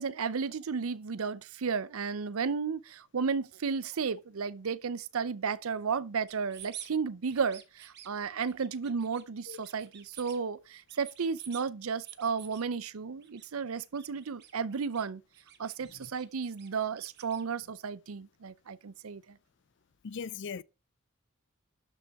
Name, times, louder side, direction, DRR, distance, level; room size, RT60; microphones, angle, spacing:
voice 1, 0.0-15.2 15.6-19.4, right 5 dB, 90° right, 0.6 m, -33 dB
sound 1, 6.3-6.9 7.3-8.1 8.5-9.2 9.5-10.4 10.7-11.6 12.0-12.7 13.2-13.5 13.7-15.1 15.3-17.4, right 11 dB, 55° right, 1.2 m, -49 dB
voice 2, 20.0-20.6, left 6 dB, 55° left, 0.4 m, -38 dB
12.0 x 5.3 x 4.7 m
head